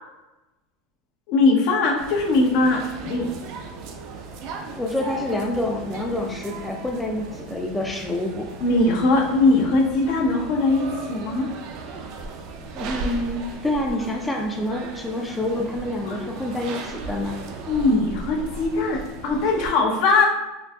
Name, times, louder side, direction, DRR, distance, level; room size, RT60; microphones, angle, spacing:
voice 1, 1.3-3.3 8.6-11.5 16.0-16.3 17.7-20.3, left 3 dB, 60° left, 1 dB, 0.6 m, -20 dB
sound 1, 2.0-19.7, right 3 dB, 55° right, 0.4 m, -37 dB
voice 2, 4.7-8.5 12.7-17.4, left 1 dB, 10° left, 0 dB, 0.4 m, -27 dB
3.8 x 2.5 x 2.3 m, 1.0 s
supercardioid pair, 130°, 0 cm